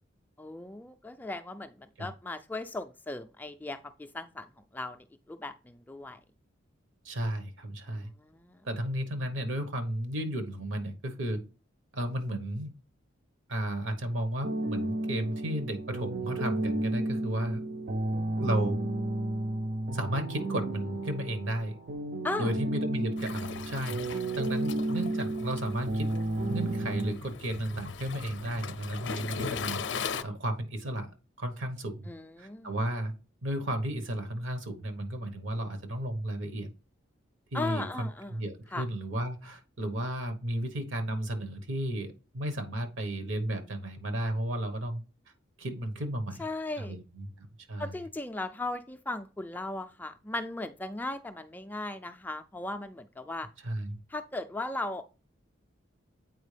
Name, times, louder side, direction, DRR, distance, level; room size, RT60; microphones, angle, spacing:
voice 1, 0.4-4.5 4.7-6.2 7.9-8.6 22.2-22.5 32.1-32.7 37.5-38.4 38.7-38.8 46.4-47.0 47.8-53.5 54.1-55.0, left 2 dB, 10° left, 7 dB, 0.3 m, -37 dB
voice 2, 7.0-8.1 8.6-11.4 11.9-12.7 13.5-17.6 18.4-18.8 19.9-21.8 22.4-26.1 26.5-29.8 30.2-31.1 31.4-32.1 32.4-33.1 33.4-36.7 37.5-45.0 45.6-46.5 46.8-48.0 53.6-54.0, right 1 dB, 75° right, 7 dB, 1.2 m, -33 dB
sound 1, 14.4-27.1, right 1 dB, 50° right, 0.5 m, -32 dB
Waves surf, 23.2-30.2, left 5 dB, 65° left, 0.5 m, -39 dB
8.0 x 4.5 x 3.3 m, 0.33 s
head